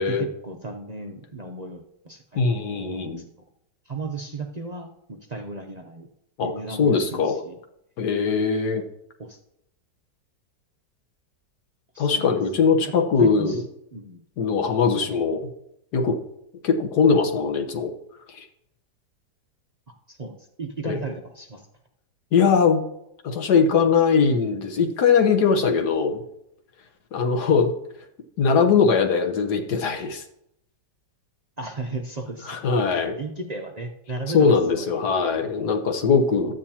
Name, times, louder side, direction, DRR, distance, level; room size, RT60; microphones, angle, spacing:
voice 1, 0.0-2.4 2.8-3.1 3.9-6.1 6.4-7.5 9.2-9.4 11.9-12.4 13.2-13.6 13.9-14.2 20.1-21.7 31.6-32.6 32.9-35.0, right 3 dB, 60° right, 3 dB, 0.4 m, -35 dB
voice 2, 2.4-3.2 6.4-7.4 8.0-8.8 12.0-13.6 14.4-15.5 15.9-16.2 16.6-17.9 18.3-18.5 20.8-21.0 22.3-22.8 23.2-26.2 27.1-27.7 28.4-30.2 32.5-33.2 34.3-36.5, left 5 dB, 70° left, 4 dB, 1.6 m, -21 dB
12.5 x 8.9 x 2.9 m, 0.78 s
omnidirectional pair, 1.8 m